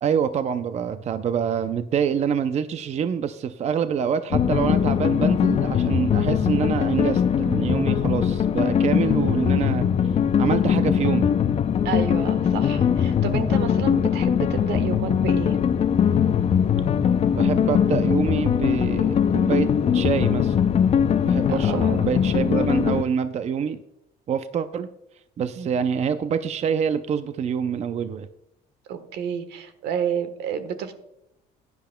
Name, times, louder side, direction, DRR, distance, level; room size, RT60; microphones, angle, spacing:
voice 1, 0.0-9.9 10.4-11.3 17.3-20.6 21.2-23.8 24.3-24.9 25.4-28.3, right 7 dB, 40° right, 11 dB, 0.5 m, -26 dB
sound 1, 4.3-23.0, left 8 dB, 35° left, 0.5 m, -21 dB
voice 2, 11.8-15.6 21.5-22.1 25.6-25.7 28.9-30.9, right 8 dB, 85° right, 10 dB, 1.2 m, -30 dB
16.0 x 10.5 x 2.2 m, 0.83 s
cardioid pair, 110°, 17 cm